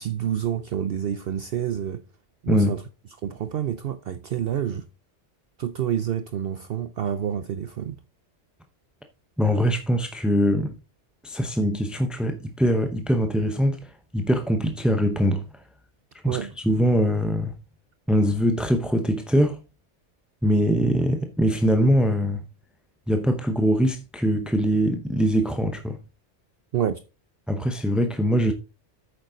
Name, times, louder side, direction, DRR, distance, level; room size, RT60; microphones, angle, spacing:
voice 1, 0.0-2.0 2.4-2.8 3.2-4.9 5.6-8.0 16.2-16.5 26.7-27.0, right 9 dB, 60° right, 0.7 m, -28 dB
voice 2, 9.4-10.7 11.2-15.4 16.2-16.4 16.6-17.5 18.1-19.6 20.4-22.4 23.1-26.0 27.5-28.5, equal, ahead, 0.5 m, -22 dB
8.7 x 6.8 x 3.9 m
omnidirectional pair, 1.2 m